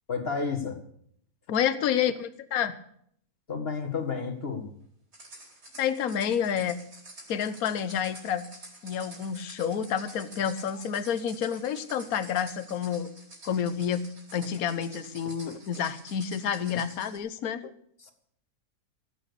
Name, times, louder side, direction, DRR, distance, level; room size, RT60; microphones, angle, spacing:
voice 1, 0.1-0.8 3.5-4.7 18.0-18.1, left 5 dB, 40° left, 5 dB, 2.0 m, -31 dB
voice 2, 1.5-2.8 5.8-6.8 7.3-8.5 8.8-13.1 13.4-17.7, left 8 dB, 65° left, 12 dB, 1.4 m, -29 dB
sound 1, 5.1-17.2, right 1 dB, 85° right, 5.1 m, -49 dB
17.5 x 9.1 x 6.8 m, 0.68 s
omnidirectional pair, 1.7 m